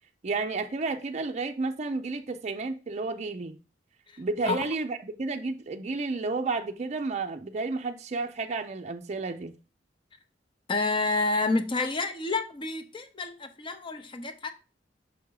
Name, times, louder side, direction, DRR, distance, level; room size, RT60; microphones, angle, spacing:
voice 1, 0.2-3.6 4.2-9.5, right 3 dB, 40° right, 0.5 m, -31 dB
voice 2, 4.1-4.6 10.7-14.5, left 3 dB, 30° left, 0.7 m, -29 dB
6.2 x 3.6 x 4.7 m
head